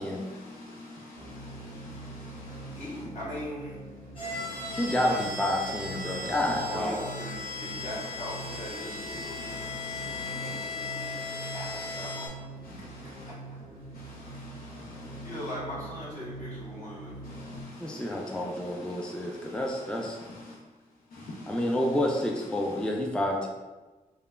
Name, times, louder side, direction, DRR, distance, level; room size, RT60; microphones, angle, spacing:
voice 1, 0.0-3.0 4.2-5.2 6.1-6.9 7.7-8.1 9.3-10.5 12.6-13.3 13.9-15.5 17.2-20.6 21.1-22.9, left 2 dB, 85° left, -4 dB, 0.4 m, -47 dB
sound 1, 1.1-17.6, right 2 dB, 80° right, 0.5 m, -44 dB
voice 2, 2.7-3.8 4.8-5.2 6.7-7.3 7.6-12.5 12.8-12.9 15.2-17.1, equal, 60° left, -8 dB, 1.4 m, -40 dB
sound 2, 4.1-12.3, left 3 dB, 40° left, 1.3 m, -37 dB
voice 3, 4.7-7.1 17.8-20.2 21.5-23.5, left 1 dB, 5° left, 0 dB, 0.3 m, -29 dB
3.1 x 2.2 x 2.3 m, 1.2 s
cardioid pair, 70°, 14 cm